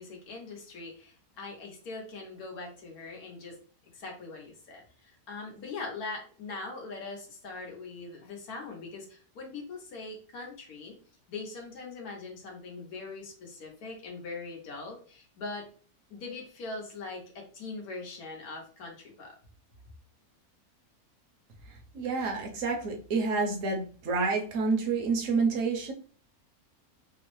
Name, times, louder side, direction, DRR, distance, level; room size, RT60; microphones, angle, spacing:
voice 1, 0.0-3.6 3.9-11.0 11.3-15.6 16.1-19.4, left 3 dB, 80° left, 1 dB, 1.4 m, -41 dB
voice 2, 21.9-25.9, right 4 dB, 65° right, 2 dB, 1.0 m, -28 dB
3.4 x 2.0 x 3.0 m, 0.41 s
omnidirectional pair, 1.6 m